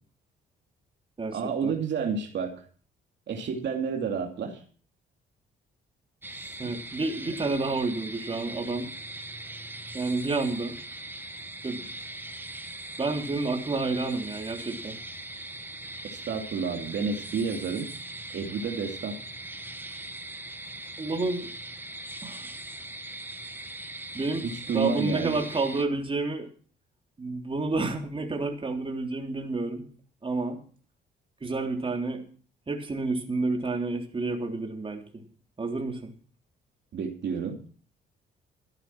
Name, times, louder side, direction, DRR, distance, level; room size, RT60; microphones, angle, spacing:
voice 1, 1.3-2.5 3.3-4.6 6.6-6.8 16.0-17.9 18.3-19.2 24.4-25.4 36.9-37.6, right 5 dB, 65° right, 2 dB, 2.8 m, -30 dB
sound 1, 6.2-25.8, right 2 dB, 10° right, 1.4 m, -40 dB
voice 2, 6.6-8.9 9.9-10.8 11.6-11.8 13.0-15.0 21.0-21.5 22.2-22.5 24.1-26.5 27.2-29.9 30.2-30.6 31.4-32.2 32.7-35.2 35.6-36.1, right 3 dB, 25° right, 2 dB, 3.5 m, -30 dB
14.0 x 11.0 x 6.2 m, 0.42 s
cardioid pair, 90°, 20 cm